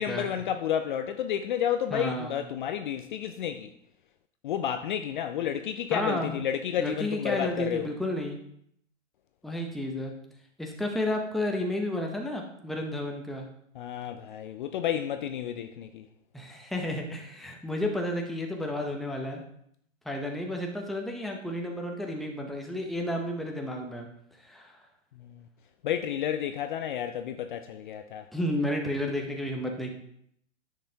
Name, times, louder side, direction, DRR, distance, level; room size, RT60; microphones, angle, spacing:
voice 1, 0.0-3.7 4.4-7.9 13.8-16.1 25.2-25.4 25.8-28.3, left 9 dB, 40° left, 0.4 m, -31 dB
voice 2, 1.9-2.4 5.9-6.4 6.8-8.4 9.4-10.1 10.6-13.5 16.3-19.4 20.1-24.1 24.4-24.7 28.3-29.9, left 1 dB, ahead, 0.7 m, -32 dB
10.0 x 6.6 x 2.8 m
hypercardioid pair, 135°, 39 cm